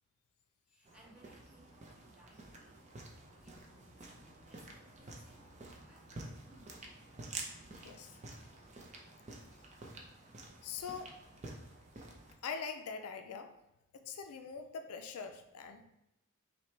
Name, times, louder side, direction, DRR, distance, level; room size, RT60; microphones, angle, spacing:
voice 1, 0.7-2.8 3.4-5.5 5.9-6.8, right 1 dB, 5° right, -5 dB, 1.0 m, -64 dB
sound 1, 0.9-12.4, right 2 dB, 30° right, 0.6 m, -50 dB
voice 2, 7.8-8.2 10.6-11.1 12.4-13.5 13.9-15.8, left 5 dB, 75° left, 6 dB, 0.4 m, -43 dB
5.7 x 2.2 x 3.1 m, 0.89 s
head